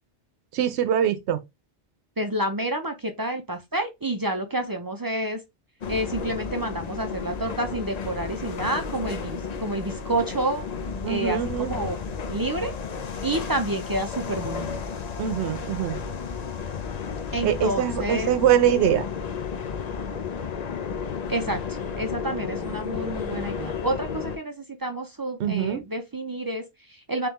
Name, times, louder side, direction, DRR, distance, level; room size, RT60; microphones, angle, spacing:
voice 1, 0.5-1.4 11.0-11.7 15.2-16.0 17.4-19.1 25.4-25.8, right 10 dB, 80° right, 0.9 m, -23 dB
voice 2, 2.2-5.4 5.9-10.6 11.1-12.0 12.3-12.7 13.2-14.7 17.3-18.3 21.3-27.3, right 1 dB, 35° right, 0.3 m, -29 dB
sound 1, 5.8-24.4, left 6 dB, 50° left, 0.6 m, -33 dB
3.5 x 3.3 x 3.0 m
omnidirectional pair, 1.1 m